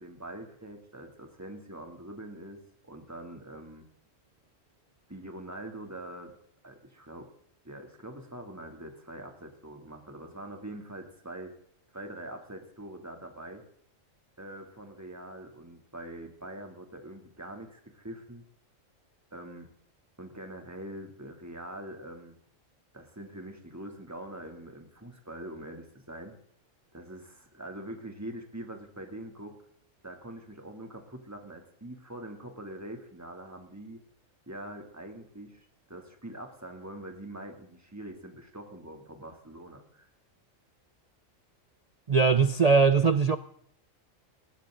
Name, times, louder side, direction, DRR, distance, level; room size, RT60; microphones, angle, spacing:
voice 1, 0.0-3.8 5.1-6.4 6.6-7.3 7.6-11.5 11.9-13.6 14.4-18.4 19.3-19.7 20.2-22.4 22.9-26.4 26.9-29.6 30.0-34.0 34.5-40.1, right 1 dB, 10° right, 2.8 m, -44 dB
voice 2, 42.1-43.4, right 5 dB, 40° right, 0.6 m, -21 dB
20.0 x 17.0 x 3.9 m
omnidirectional pair, 1.3 m